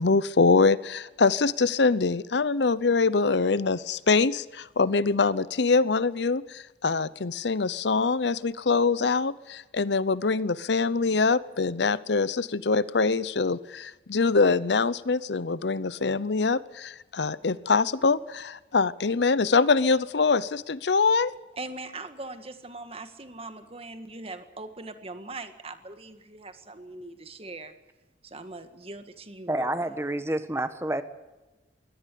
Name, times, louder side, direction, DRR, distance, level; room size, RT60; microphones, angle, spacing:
voice 1, 0.0-21.3, left 4 dB, 70° left, 18 dB, 0.7 m, -24 dB
voice 2, 21.6-27.7 28.2-29.9, right 2 dB, 35° right, 9 dB, 1.8 m, -41 dB
voice 3, 29.5-31.0, right 1 dB, 15° right, 11 dB, 1.3 m, -28 dB
23.0 x 17.5 x 8.5 m, 1.1 s
head